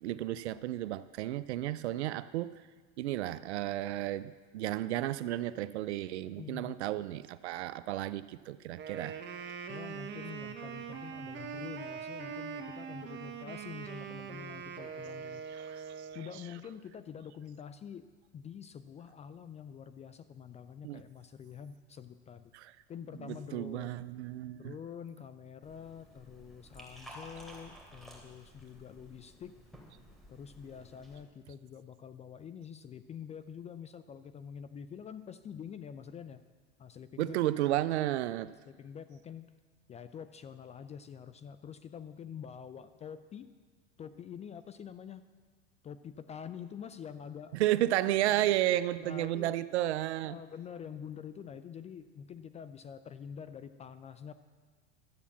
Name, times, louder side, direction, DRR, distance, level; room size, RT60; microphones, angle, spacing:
voice 1, 0.0-2.5 3.0-9.2 15.6-16.1 20.8-21.0 22.5-22.7 23.2-24.7 37.2-38.5 47.6-50.3, right 14 dB, 85° right, 16 dB, 0.5 m, -32 dB
voice 2, 6.4-6.8 9.7-15.4 16.1-22.5 22.9-24.0 24.6-29.6 30.3-36.4 36.8-37.4 38.6-39.5 39.9-43.5 44.0-45.2 45.8-47.6 48.3-48.5 49.0-49.6 50.2-54.3, left 7 dB, 20° left, 12 dB, 0.4 m, -46 dB
Wind instrument woodwind instrument, 8.7-16.4, right 6 dB, 35° right, 1.2 m, -42 dB
Liquid, 25.6-31.2, equal, ahead, 3.1 m, -53 dB
12.5 x 8.3 x 7.2 m, 1.5 s
hypercardioid pair, 105°, 33 cm